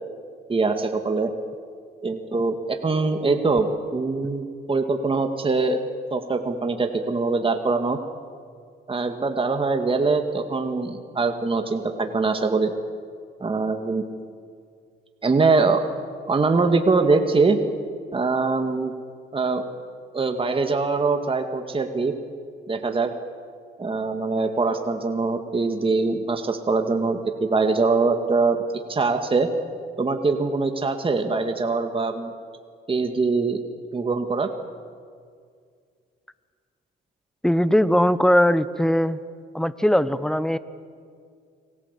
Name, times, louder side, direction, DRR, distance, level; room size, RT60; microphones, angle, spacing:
voice 1, 0.5-1.3 2.0-3.7 3.9-5.8 6.1-8.0 8.9-12.7 13.4-14.0 15.2-15.8 16.3-17.6 18.1-18.9 19.3-19.6 20.1-22.1 22.7-23.1 23.8-28.6 28.9-29.5 30.0-32.3 32.9-33.6 33.9-34.5, right 4 dB, 25° right, 5 dB, 2.2 m, -23 dB
voice 2, 37.4-39.2 39.5-40.6, equal, 5° left, 14 dB, 1.1 m, -20 dB
30.0 x 21.0 x 8.4 m, 2.2 s
cardioid pair, 90°, 20 cm